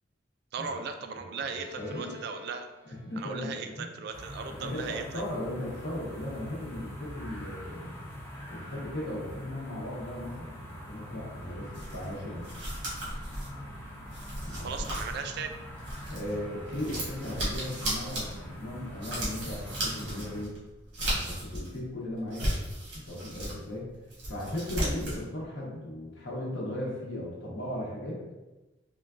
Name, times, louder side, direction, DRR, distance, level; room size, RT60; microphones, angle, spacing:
voice 1, 0.5-2.7 3.2-5.2 14.6-15.5, right 5 dB, 60° right, 6 dB, 0.3 m, -37 dB
voice 2, 1.1-2.1 2.8-3.9 4.5-7.9 8.5-12.5 14.4-15.0 16.1-20.6 21.0-22.5 22.9-23.9 24.3-28.2, left 1 dB, 70° left, -4 dB, 0.9 m, -37 dB
Bowed string instrument, 1.4-4.9, left 4 dB, 30° right, 0.7 m, -49 dB
sound 1, 4.1-20.4, equal, 10° left, 0.5 m, -44 dB
sound 2, 11.7-16.4 16.7-21.8 22.2-23.6 23.9-25.2, right 1 dB, 85° right, 1.3 m, -35 dB
3.7 x 2.3 x 2.4 m, 1.1 s
head